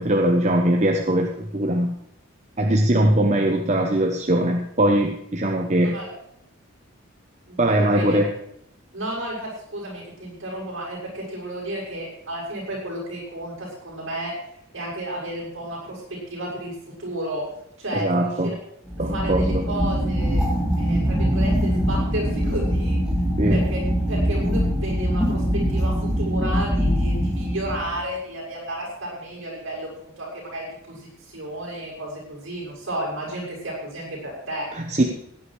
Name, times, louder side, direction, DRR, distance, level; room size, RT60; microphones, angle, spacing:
voice 1, 0.0-1.9 2.6-6.0 7.6-8.3 17.9-18.5 19.0-19.6 23.4-23.6 34.7-35.0, right 1 dB, 35° right, 2 dB, 1.0 m, -21 dB
voice 2, 5.7-6.1 7.5-8.0 8.9-14.3 14.7-17.4 17.8-18.3 19.1-20.4 20.7-23.0 23.5-23.8 24.1-34.7, right 1 dB, 60° right, -4 dB, 6.9 m, -32 dB
sound 1, 18.9-28.0, equal, 5° right, 2.7 m, -23 dB
16.5 x 10.0 x 4.9 m, 0.73 s
head